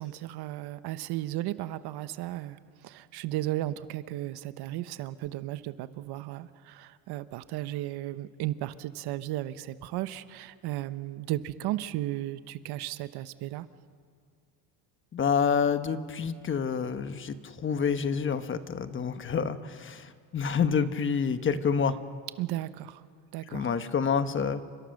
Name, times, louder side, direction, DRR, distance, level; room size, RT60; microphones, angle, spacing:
voice 1, 0.0-2.6 2.8-13.7 22.4-23.0 23.3-23.7, right 15 dB, 65° right, 13 dB, 1.1 m, -35 dB
voice 2, 15.1-22.0 23.5-24.6, left 6 dB, 30° left, 10 dB, 1.2 m, -28 dB
30.0 x 25.0 x 6.6 m, 2.1 s
cardioid pair, 125°, 42 cm